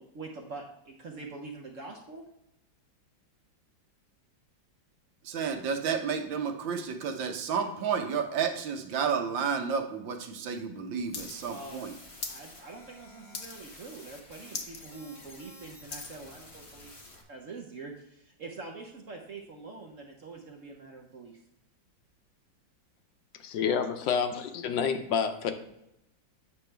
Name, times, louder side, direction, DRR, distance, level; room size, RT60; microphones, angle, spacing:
voice 1, 0.0-2.2 11.5-12.0 12.3-17.0 17.3-21.4, right 3 dB, 60° right, 1 dB, 0.8 m, -44 dB
voice 2, 5.2-11.9, right 6 dB, 75° right, 5 dB, 1.5 m, -31 dB
sound 1, 11.0-17.2, left 2 dB, 30° left, 0.6 m, -51 dB
sound 2, 11.1-11.3 11.6-12.4 12.8-13.0 13.3-13.8 14.1-14.2 14.5-14.8 15.2-16.2 16.8-16.9, left 5 dB, 50° left, 0.9 m, -39 dB
voice 3, 23.4-25.5, left 7 dB, 75° left, 7 dB, 1.4 m, -28 dB
8.4 x 6.2 x 3.3 m, 0.84 s
omnidirectional pair, 2.1 m